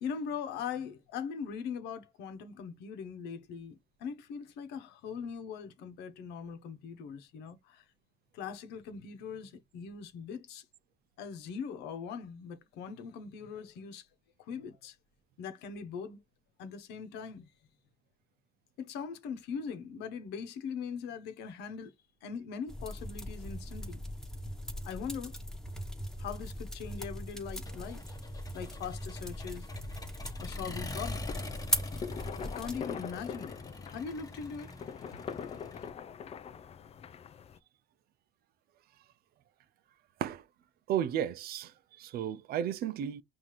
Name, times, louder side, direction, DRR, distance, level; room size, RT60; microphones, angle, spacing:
voice 1, 0.0-7.8 8.3-10.6 11.2-14.1 14.5-14.9 15.4-16.2 16.6-17.5 18.8-21.9 22.2-24.0 24.8-25.3 26.2-28.0 28.5-29.7 30.4-31.3 32.4-33.6 33.9-34.7, left 6 dB, 85° left, 1.0 m, -41 dB
sound 1, 22.7-32.8, equal, 5° left, 1.3 m, -39 dB
Accelerating revving vroom, 27.7-35.9, left 3 dB, 20° left, 1.2 m, -45 dB
sound 2, 31.2-37.6, left 7 dB, 35° left, 0.5 m, -43 dB
voice 2, 40.9-43.2, right 10 dB, 65° right, 0.6 m, -33 dB
5.7 x 2.7 x 3.1 m
cardioid pair, 110°, 17 cm